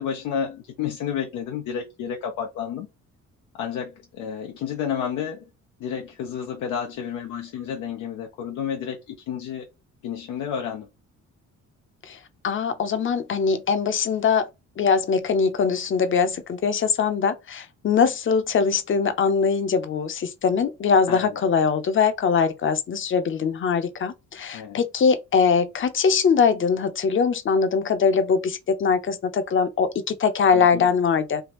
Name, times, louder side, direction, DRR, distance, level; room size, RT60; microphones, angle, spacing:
voice 1, 0.0-2.9 3.5-5.5 5.8-9.7 10.0-10.9 21.1-21.4 24.5-24.8 30.5-30.9, left 8 dB, 90° left, 0.6 m, -31 dB
voice 2, 12.4-14.5 14.8-31.4, left 5 dB, 40° left, 0.7 m, -22 dB
3.4 x 2.4 x 3.0 m
cardioid pair, 90°, 30 cm